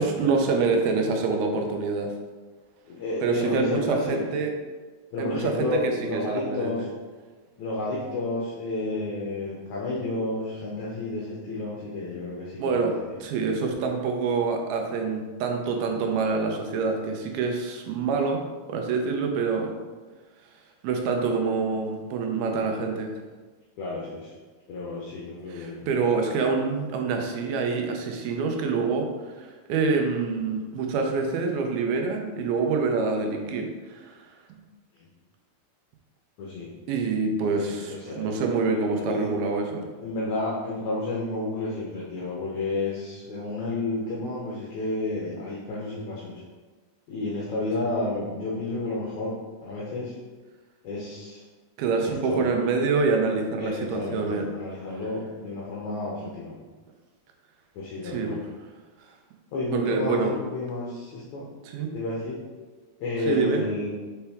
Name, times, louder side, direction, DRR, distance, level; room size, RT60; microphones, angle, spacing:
voice 1, 0.0-2.1 3.2-4.5 5.2-5.7 6.1-6.9 12.6-12.9 13.2-18.4 18.7-19.7 20.8-23.1 25.5-29.1 29.4-34.2 36.9-39.9 51.8-54.4 58.0-58.4 59.7-60.3 61.6-61.9 63.3-63.6, right 4 dB, 80° right, 3 dB, 2.6 m, -26 dB
voice 2, 2.9-4.3 5.1-6.9 7.6-13.2 23.8-24.3 24.7-25.9 35.0-35.1 36.4-36.7 37.4-38.3 39.1-39.3 40.0-46.4 47.1-49.4 49.6-50.2 50.8-51.4 52.0-52.5 53.6-56.6 57.8-58.4 59.5-61.5 61.9-62.4 63.0-63.9, left 2 dB, 75° left, -5 dB, 1.8 m, -31 dB
5.7 x 5.7 x 3.5 m, 1.3 s
omnidirectional pair, 4.5 m